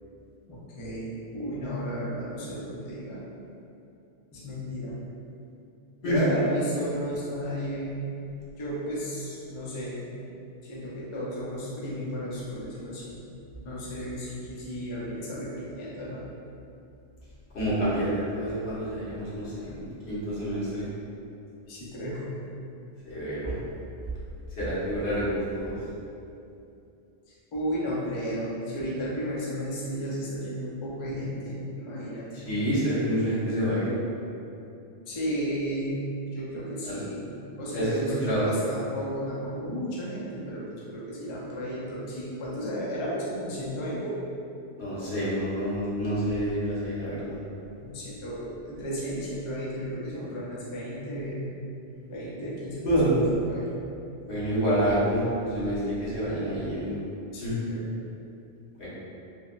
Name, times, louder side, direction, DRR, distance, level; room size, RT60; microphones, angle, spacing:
voice 1, 0.5-3.2 4.3-4.9 6.0-8.1 8.6-10.1 10.7-13.2 13.6-16.2 21.7-22.3 27.5-32.6 35.1-44.2 47.8-51.5 52.1-53.0 53.4-53.8 57.3-58.0, equal, 40° left, -7 dB, 0.4 m, -33 dB
voice 2, 17.5-19.8 20.1-20.8 23.0-23.5 24.6-25.8 32.4-33.8 36.9-37.0 37.7-37.9 38.3-38.5 44.8-47.4 52.8-53.1 54.3-57.0 57.4-57.5 58.8-58.9, equal, 75° left, -10 dB, 1.1 m, -27 dB
3.3 x 2.0 x 2.3 m, 2.7 s
omnidirectional pair, 1.1 m